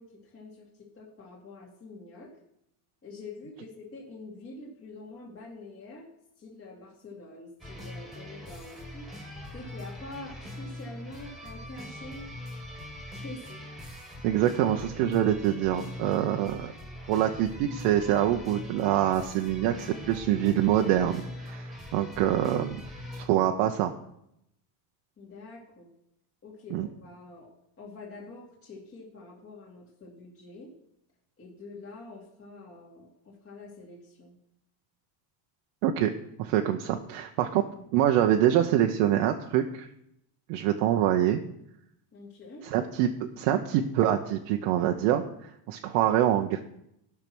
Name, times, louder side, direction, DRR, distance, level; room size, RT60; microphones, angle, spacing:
voice 1, 0.0-2.3 3.0-6.1 6.4-9.1 9.5-12.3 13.2-13.6 25.2-25.9 26.4-30.7 31.4-34.4 42.1-42.7 44.4-44.5, left 2 dB, 30° left, -3 dB, 2.3 m, -46 dB
sound 1, 7.6-23.3, left 1 dB, ahead, 2.0 m, -42 dB
voice 2, 14.2-16.7 17.1-22.8 23.1-23.9 26.7-26.9 35.8-36.1 36.4-37.6 37.9-39.9 40.5-41.4 42.6-46.6, right 11 dB, 85° right, 4 dB, 0.9 m, -25 dB
14.0 x 6.0 x 6.1 m, 0.79 s
cardioid pair, 140°, 48 cm